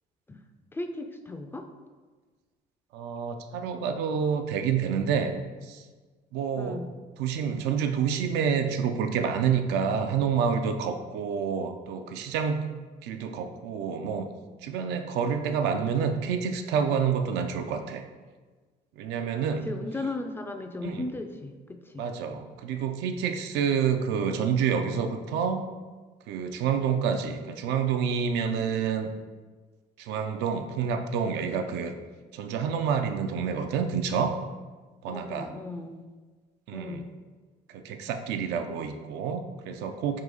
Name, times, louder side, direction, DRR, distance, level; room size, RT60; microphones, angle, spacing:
voice 1, 0.7-1.7 6.6-6.9 19.6-22.0 35.1-36.0 36.7-37.1, left 2 dB, 15° left, 6 dB, 0.3 m, -36 dB
voice 2, 2.9-5.3 5.6-5.8 6.3-6.8 7.2-12.7 13.0-14.3 14.6-18.0 19.0-19.7 20.8-21.1 22.0-25.7 26.3-29.1 30.0-31.9 32.3-34.4 35.0-35.5 36.7-37.1 37.7-40.2, right 7 dB, 90° right, 6 dB, 0.4 m, -28 dB
3.9 x 2.7 x 4.7 m, 1.4 s
cardioid pair, 110°, 17 cm